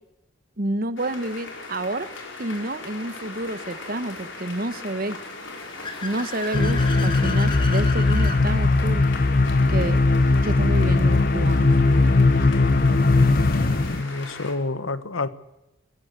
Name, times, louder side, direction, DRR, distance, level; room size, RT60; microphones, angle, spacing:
voice 1, 0.6-2.1 2.4-5.2 6.0-9.1 9.7-10.0 10.4-11.7, right 1 dB, 45° right, 13 dB, 1.2 m, -29 dB
sound 1, 1.0-14.5, left 3 dB, 65° left, 5.1 m, -39 dB
Car / Accelerating revving vroom, 5.2-8.4, left 3 dB, 25° left, 2.3 m, -34 dB
sound 2, 6.5-14.0, left 3 dB, 45° left, 1.0 m, -19 dB
voice 2, 13.9-15.3, left 3 dB, 90° left, 13 dB, 1.4 m, -28 dB
26.0 x 16.5 x 8.2 m, 0.94 s
head